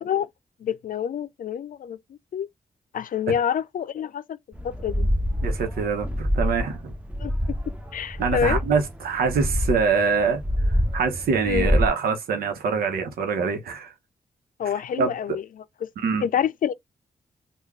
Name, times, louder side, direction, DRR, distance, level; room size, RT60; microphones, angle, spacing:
voice 1, 0.6-2.0 2.3-2.5 2.9-4.4 4.6-5.1 7.2-7.3 7.9-8.6 11.4-11.8 14.6-15.9 16.2-16.7, left 8 dB, 65° left, 0.5 m, -27 dB
sound 1, 4.5-11.9, equal, 10° right, 1.0 m, -26 dB
voice 2, 5.4-6.9 8.2-10.4 10.9-13.9 15.0-15.1 16.0-16.2, right 5 dB, 85° right, 1.0 m, -24 dB
3.6 x 2.4 x 3.3 m
cardioid pair, 55°, 15 cm